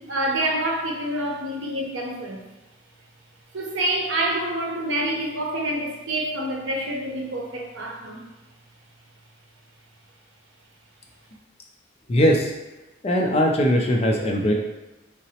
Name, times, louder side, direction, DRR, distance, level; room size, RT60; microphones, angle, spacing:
voice 1, 0.0-2.4 3.5-8.2, right 1 dB, 85° right, 0 dB, 0.7 m, -27 dB
voice 2, 12.1-12.5 13.0-14.5, equal, 30° left, 1 dB, 0.4 m, -20 dB
3.8 x 2.1 x 2.8 m, 1.1 s
head